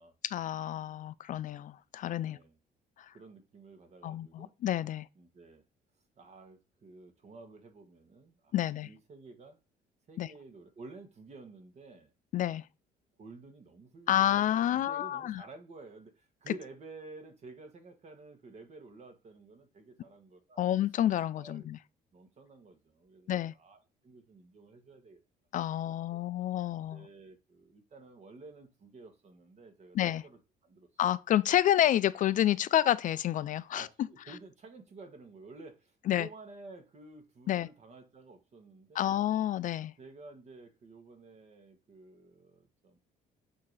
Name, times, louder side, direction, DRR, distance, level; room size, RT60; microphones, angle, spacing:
voice 1, 0.2-2.4 4.0-5.1 8.5-8.9 10.2-10.3 12.3-12.6 14.1-15.4 20.6-21.8 23.3-23.5 25.5-27.1 30.0-30.2 31.0-33.9 36.1-36.3 37.5-37.7 39.0-39.9, left 12 dB, 50° left, 0.4 m, -29 dB
voice 2, 2.2-2.6 3.1-4.5 5.1-5.6 6.2-8.5 8.8-9.6 10.1-12.1 13.2-20.7 21.3-21.7 22.1-25.2 25.7-25.8 26.1-26.2 26.9-30.9 33.7-39.2 40.0-43.0, right 3 dB, 40° right, 1.5 m, -52 dB
8.5 x 2.9 x 4.8 m
cardioid pair, 110°, 17 cm